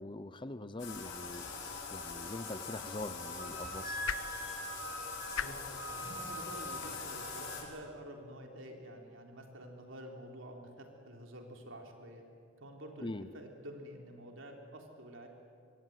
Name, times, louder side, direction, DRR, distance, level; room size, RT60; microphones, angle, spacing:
voice 1, 0.0-1.5 1.9-4.0 13.0-13.3, left 2 dB, 25° left, 12 dB, 0.8 m, -43 dB
Bathtub (filling or washing), 0.8-7.6, left 4 dB, 60° left, 6.0 m, -43 dB
sound 1, 2.2-8.5, left 8 dB, 75° left, 0.7 m, -46 dB
Wind instrument woodwind instrument, 3.4-7.6, right 1 dB, 15° right, 4.3 m, -44 dB
voice 2, 5.9-12.2 12.6-15.3, equal, 70° right, 2 dB, 3.7 m, -49 dB
26.0 x 24.5 x 9.4 m, 2.3 s
head